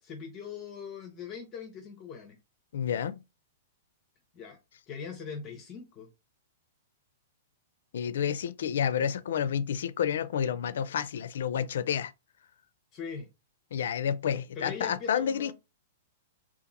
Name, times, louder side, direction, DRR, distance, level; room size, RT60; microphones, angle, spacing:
voice 1, 0.0-2.4 4.3-4.6 4.9-6.1 12.9-13.3 14.2-15.5, left 6 dB, 25° left, 0.6 m, -41 dB
voice 2, 2.7-3.2 7.9-12.1 13.7-15.5, left 8 dB, 70° left, 0.4 m, -30 dB
2.8 x 2.4 x 3.8 m
supercardioid pair, 170°, 0 cm